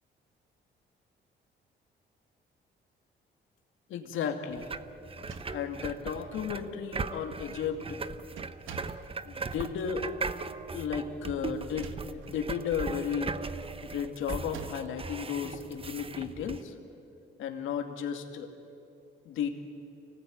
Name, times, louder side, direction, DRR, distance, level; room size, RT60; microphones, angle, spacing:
voice 1, 3.9-4.7 5.2-8.0 9.2-10.1 10.7-13.4 13.8-16.8 17.4-18.5 19.3-19.5, left 7 dB, 85° left, 5 dB, 2.4 m, -34 dB
sound 1, 4.5-16.6, right 4 dB, 30° right, 0.9 m, -39 dB
sound 2, 5.1-6.0 6.9-7.0 7.3-7.7 8.4-9.1 11.5-12.4 12.9-13.2 14.3-15.0, right 6 dB, 85° right, 1.4 m, -48 dB
25.5 x 19.0 x 9.4 m, 2.6 s
cardioid pair, 90°, 20 cm